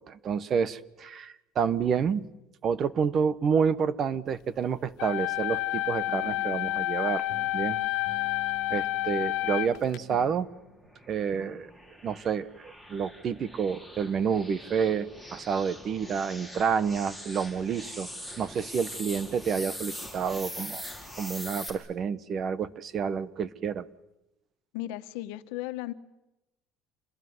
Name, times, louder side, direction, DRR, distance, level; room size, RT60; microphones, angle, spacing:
voice 1, 0.0-2.3 2.6-7.3 7.5-7.8 8.7-10.5 11.1-11.7 12.0-18.1 18.4-20.9 21.2-23.8, right 6 dB, 40° right, 17 dB, 1.2 m, -29 dB
sound 1, 5.0-10.0, left 18 dB, 65° left, 1.6 m, -29 dB
sound 2, 6.1-7.0 7.3-10.9 11.3-11.6, equal, 70° right, 7.6 m, -48 dB
sound 3, 10.3-21.7, equal, 10° right, 4.8 m, -43 dB
voice 2, 24.7-25.9, left 16 dB, 85° left, 10 dB, 1.4 m, -36 dB
27.5 x 21.0 x 9.7 m, 0.95 s
cardioid pair, 135°, 0 cm